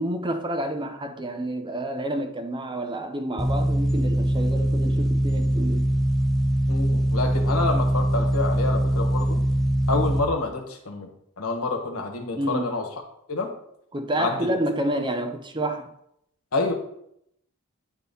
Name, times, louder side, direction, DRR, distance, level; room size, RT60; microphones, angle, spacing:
voice 1, 0.0-5.9 12.4-12.7 13.9-15.9, right 1 dB, 20° right, 0.6 m, -29 dB
sound 1, 3.4-10.2, right 1 dB, ahead, 0.9 m, -22 dB
voice 2, 6.7-9.4 9.9-11.1 11.4-12.9 13.3-13.5 14.2-14.4 16.5-16.7, left 3 dB, 80° left, 1.3 m, -27 dB
9.8 x 3.7 x 4.1 m
head